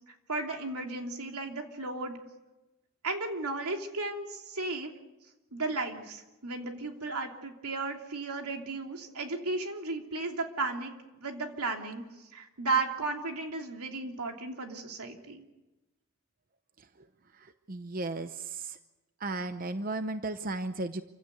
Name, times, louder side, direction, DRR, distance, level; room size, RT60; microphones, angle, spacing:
voice 1, 0.3-2.2 3.0-4.9 5.5-10.9 11.2-12.0 12.3-15.4, right 3 dB, 90° right, 3 dB, 3.0 m, -34 dB
voice 2, 17.4-18.8 19.2-21.0, right 2 dB, 40° right, 10 dB, 0.7 m, -35 dB
27.5 x 16.0 x 8.2 m, 1.1 s
head